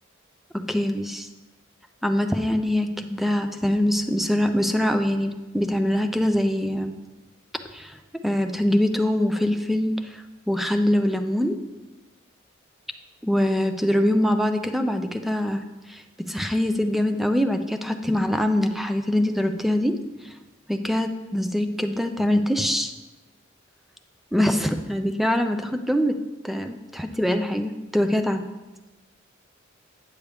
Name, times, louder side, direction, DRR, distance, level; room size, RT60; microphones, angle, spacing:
voice 1, 0.5-1.3 2.0-6.9 7.7-8.0 8.2-11.6 13.2-20.0 20.2-20.3 20.7-22.9 24.3-26.2 26.4-28.5, left 1 dB, ahead, 7 dB, 0.4 m, -24 dB
9.3 x 6.8 x 3.4 m, 1.1 s
head